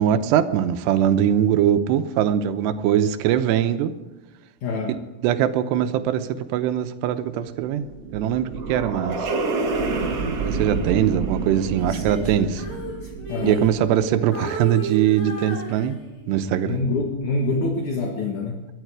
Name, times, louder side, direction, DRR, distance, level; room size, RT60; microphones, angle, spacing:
voice 1, 0.0-3.9 5.2-9.3 10.4-12.6 13.4-16.0 16.3-16.8, right 10 dB, 90° right, 9 dB, 3.0 m, -21 dB
voice 2, 4.6-5.0 13.3-13.6 16.6-18.7, left 3 dB, 55° left, 2 dB, 2.6 m, -25 dB
sound 1, 7.5-14.0, right 4 dB, 45° right, 2.3 m, -28 dB
Female singing, 11.8-14.1 14.3-16.4 16.9-17.1, right 1 dB, 20° left, 3.9 m, -33 dB
21.0 x 12.0 x 4.8 m, 1.2 s
omnidirectional pair, 4.8 m